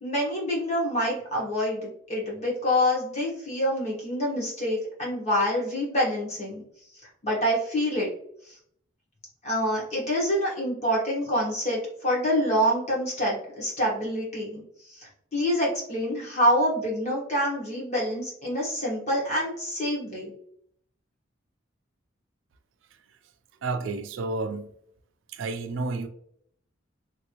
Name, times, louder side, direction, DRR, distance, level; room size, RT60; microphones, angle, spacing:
voice 1, 0.0-6.6 7.2-8.1 9.4-20.3, equal, 35° left, 1.3 m, -26 dB
voice 2, 23.6-24.7 25.3-26.1, right 3 dB, 75° right, 0.4 m, -31 dB
3.2 x 2.6 x 2.9 m
head